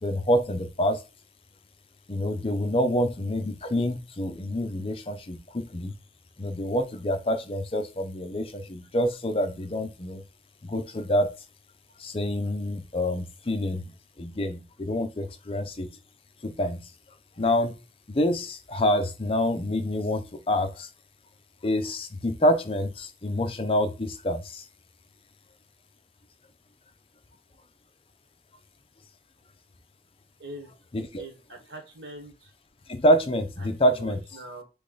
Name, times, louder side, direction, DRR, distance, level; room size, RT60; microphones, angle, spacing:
voice 1, 0.0-1.0 2.1-5.9 6.4-10.2 10.6-11.3 12.0-13.9 14.2-15.9 16.4-16.9 17.4-17.7 18.1-20.9 21.6-24.6 30.9-31.2 32.9-34.2, equal, 30° left, 7 dB, 0.6 m, -27 dB
voice 2, 30.4-30.7 31.1-32.5 33.6-34.6, right 1 dB, 90° right, 4 dB, 1.4 m, -43 dB
3.5 x 3.2 x 3.9 m, 0.31 s
head